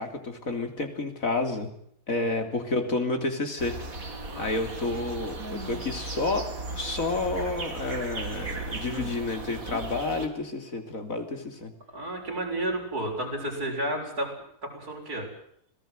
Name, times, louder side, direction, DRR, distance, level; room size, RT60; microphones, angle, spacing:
voice 1, 0.0-1.7 2.1-3.8 4.4-6.5 6.7-11.7, left 3 dB, 60° left, 6 dB, 3.5 m, -30 dB
sound 1, 3.6-10.3, right 3 dB, 65° right, 3.1 m, -36 dB
voice 2, 11.9-14.3 14.6-15.3, right 1 dB, 85° right, 0 dB, 7.4 m, -31 dB
26.0 x 19.0 x 7.9 m, 0.70 s
omnidirectional pair, 1.6 m